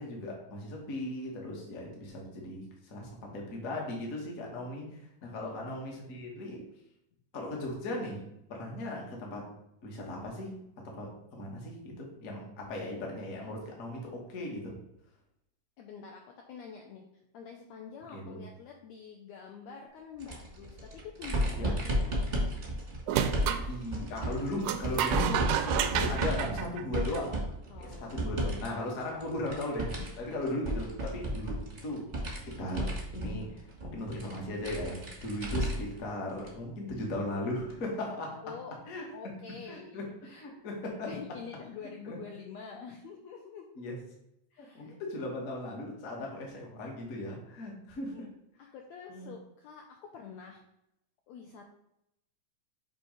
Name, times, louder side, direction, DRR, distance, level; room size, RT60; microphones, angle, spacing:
voice 1, 0.0-6.6 7.3-8.2 8.5-9.5 9.8-10.6 10.9-14.7 18.1-18.4 21.6-21.8 23.7-27.4 27.8-32.1 32.4-38.4 38.9-39.1 39.7-41.2 42.0-42.2 43.8-44.0 44.6-48.1 49.1-49.3, left 1 dB, 60° left, -1 dB, 0.8 m, -37 dB
voice 2, 5.2-5.7 15.8-17.0 17.3-22.2 27.7-28.7 30.0-30.4 38.4-38.8 39.1-40.4 41.0-43.7 44.5-45.0 48.0-48.3 48.7-50.6 51.3-51.6, left 6 dB, 85° left, 1 dB, 1.6 m, -47 dB
sound 1, 20.2-28.7 29.0-36.0 36.4-36.5 37.7-37.8, right 1 dB, 35° right, 0.7 m, -34 dB
sound 2, 23.1-23.7 24.6-27.4, right 9 dB, 85° right, 1.7 m, -30 dB
6.8 x 3.1 x 4.9 m, 0.81 s
omnidirectional pair, 3.8 m